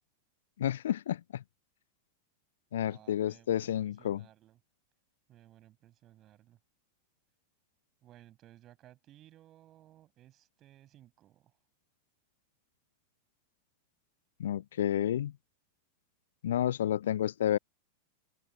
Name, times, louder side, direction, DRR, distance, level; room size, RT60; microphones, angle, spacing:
voice 1, 0.6-1.4 2.7-4.2 14.4-15.3 16.4-17.6, left 11 dB, 60° left, 0.5 m, -30 dB
voice 2, 2.8-4.6 5.3-6.6 8.0-11.6, right 13 dB, 35° right, 7.9 m, -59 dB
open air
figure-of-eight pair, 90°, 0 cm